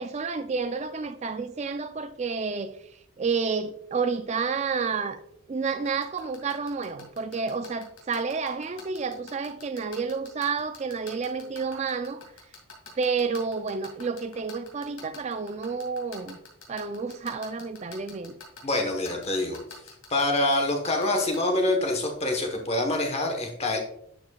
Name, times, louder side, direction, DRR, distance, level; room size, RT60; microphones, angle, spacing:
voice 1, 0.0-2.7 3.2-5.2 5.5-12.2 13.0-16.4 16.7-18.3, right 5 dB, 30° right, 0.3 m, -30 dB
sound 1, 5.9-21.4, left 6 dB, 75° left, 2.4 m, -44 dB
voice 2, 18.6-19.6 20.1-23.8, left 2 dB, 30° left, 1.0 m, -26 dB
11.0 x 5.2 x 2.3 m
head